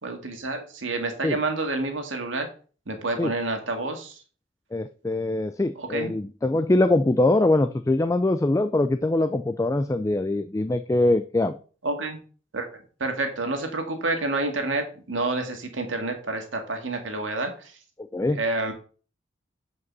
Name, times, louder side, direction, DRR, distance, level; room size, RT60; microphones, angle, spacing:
voice 1, 0.0-2.5 2.9-4.2 5.8-6.1 11.8-12.2 12.5-12.7 13.0-17.7 18.3-18.7, right 2 dB, 90° right, 4 dB, 1.9 m, -28 dB
voice 2, 4.7-11.6 18.0-18.4, left 2 dB, 15° left, 10 dB, 0.3 m, -23 dB
8.3 x 5.2 x 5.4 m, 0.40 s
head